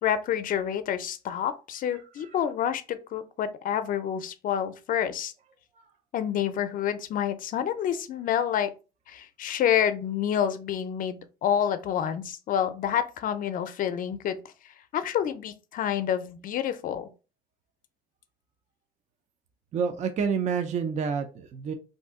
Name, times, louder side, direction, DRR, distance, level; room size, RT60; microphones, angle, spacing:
voice 1, 0.0-5.3 6.1-8.7 9.1-14.4 14.9-17.1, left 9 dB, 55° left, 0.5 m, -28 dB
voice 2, 19.7-21.7, right 6 dB, 45° right, 0.5 m, -28 dB
2.6 x 2.5 x 3.6 m
cardioid pair, 110°, 17 cm